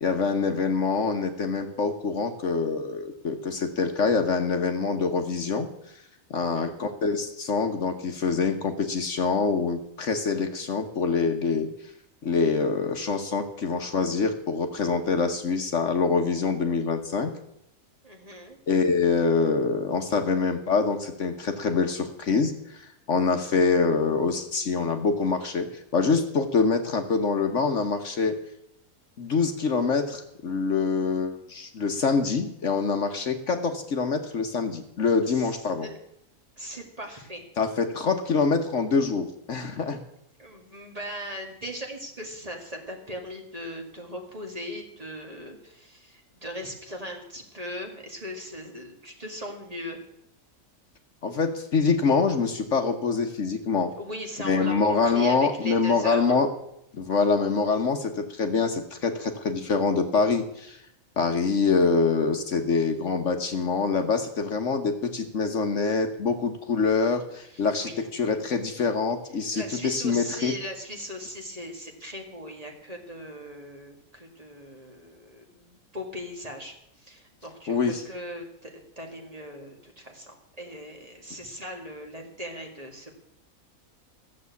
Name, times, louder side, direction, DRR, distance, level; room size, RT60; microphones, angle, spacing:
voice 1, 0.0-5.7 6.3-11.7 12.2-17.3 18.7-28.4 29.2-35.9 37.6-40.0 51.2-53.9 54.4-56.5 56.9-60.8 61.2-70.5 77.7-78.0, left 4 dB, 60° left, 5 dB, 1.4 m, -25 dB
voice 2, 6.4-6.7 18.0-18.6 35.3-36.0 36.6-37.4 40.4-50.0 54.0-56.4 67.5-68.1 69.5-83.1, equal, 25° right, 2 dB, 2.2 m, -39 dB
14.5 x 7.5 x 8.3 m, 0.76 s
omnidirectional pair, 1.5 m